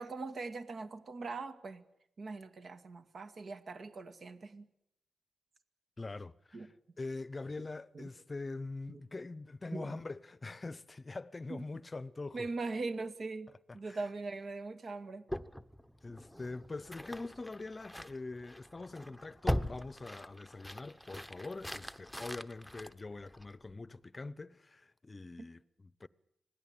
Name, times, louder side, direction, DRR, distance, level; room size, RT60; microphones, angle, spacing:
voice 1, 0.0-1.8 2.2-4.7 6.5-6.7 7.9-8.1 8.9-9.0 9.7-10.0 11.5-11.6 12.3-13.5 13.7-15.3, right 3 dB, 60° right, 1.9 m, -41 dB
voice 2, 6.0-12.5 13.7-14.0 16.0-26.1, left 3 dB, 30° left, 0.8 m, -44 dB
sound 1, 15.3-23.7, equal, ahead, 1.0 m, -41 dB
26.5 x 17.5 x 8.8 m
cardioid pair, 75°, 0 cm